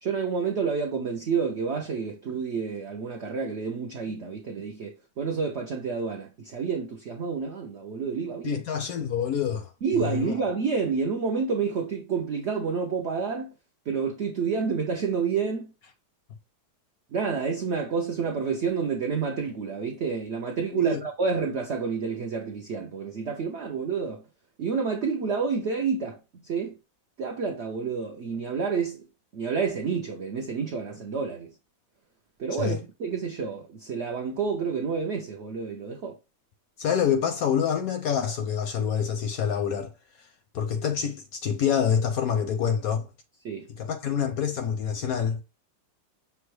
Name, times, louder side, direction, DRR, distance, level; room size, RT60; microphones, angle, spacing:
voice 1, 0.0-8.6 9.8-13.5 13.9-15.7 17.1-24.2 24.6-26.8 27.2-29.1 29.3-31.5 32.4-36.2 43.4-43.7, right 5 dB, 80° right, 0.6 m, -29 dB
voice 2, 8.4-9.7 10.0-10.3 20.7-21.0 32.6-32.8 36.8-39.9 40.5-43.1 43.8-45.4, left 8 dB, 70° left, 0.9 m, -26 dB
6.0 x 2.2 x 3.1 m
omnidirectional pair, 1.9 m